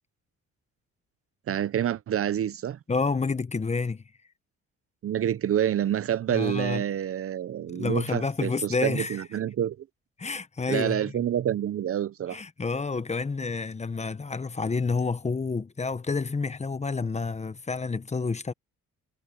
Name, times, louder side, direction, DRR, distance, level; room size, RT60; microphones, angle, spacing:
voice 1, 1.5-2.8 5.0-9.9 10.7-12.4, right 10 dB, 50° right, 0.6 m, -28 dB
voice 2, 2.9-4.0 6.3-6.8 7.7-9.2 10.2-11.1 12.3-18.5, left 4 dB, 20° left, 1.0 m, -29 dB
cardioid pair, 90°, 30 cm